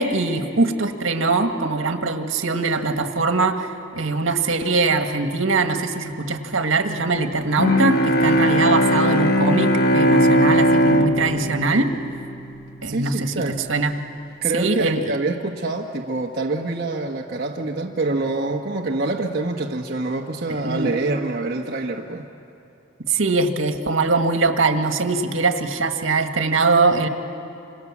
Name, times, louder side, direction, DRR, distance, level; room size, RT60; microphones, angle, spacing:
voice 1, 0.0-11.9 12.8-13.9 14.5-15.0 20.6-20.9 23.1-27.1, right 3 dB, 85° right, 6 dB, 1.7 m, -22 dB
Bowed string instrument, 7.6-12.8, equal, 50° left, 1.2 m, -19 dB
voice 2, 12.9-13.6 14.4-22.2, right 2 dB, 50° right, -1 dB, 1.3 m, -26 dB
28.0 x 26.5 x 7.3 m, 2.7 s
head